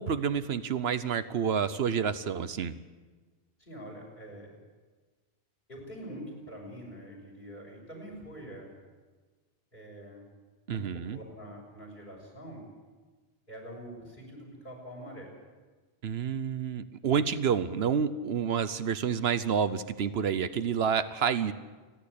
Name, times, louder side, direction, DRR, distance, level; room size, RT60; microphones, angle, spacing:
voice 1, 0.0-2.7 10.7-11.2 16.0-21.5, right 7 dB, 75° right, 13 dB, 1.0 m, -29 dB
voice 2, 3.6-4.5 5.7-8.7 9.7-10.2 10.7-10.8 11.1-12.6 13.5-15.3, equal, 50° left, -1 dB, 6.7 m, -45 dB
28.5 x 11.0 x 8.4 m, 1.3 s
omnidirectional pair, 1.1 m